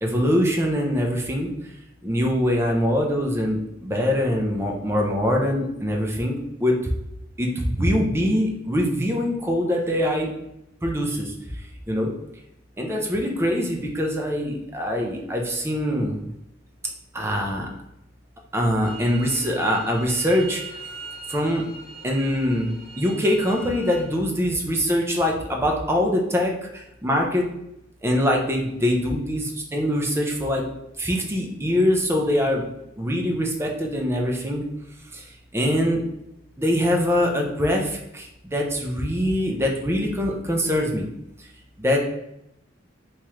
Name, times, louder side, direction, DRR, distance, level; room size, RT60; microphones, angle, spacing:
voice 1, 0.0-1.5 2.0-6.9 7.4-10.3 10.8-11.3 11.9-12.1 12.8-16.2 17.1-17.7 18.5-20.8 21.3-21.6 22.0-27.5 28.0-30.6 31.0-32.7 33.0-34.6 35.1-36.0 36.6-41.1 41.8-42.0, equal, 15° right, 0 dB, 0.6 m, -23 dB
sound 1, 18.8-24.0, right 3 dB, 50° left, 1.5 m, -41 dB
3.5 x 3.1 x 3.0 m, 0.82 s
head